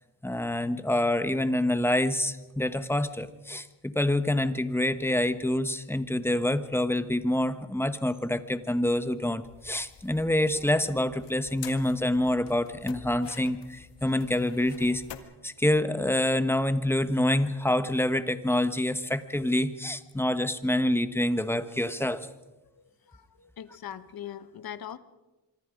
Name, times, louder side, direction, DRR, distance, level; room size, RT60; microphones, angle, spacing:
voice 1, 0.2-15.0 15.4-22.3, left 1 dB, 5° left, 11 dB, 1.1 m, -27 dB
sound 1, 4.4-15.2, left 9 dB, 90° left, 1.8 m, -49 dB
voice 2, 22.7-25.0, left 10 dB, 55° left, 13 dB, 1.3 m, -42 dB
26.0 x 24.0 x 5.2 m, 1.1 s
cardioid pair, 115°, 42 cm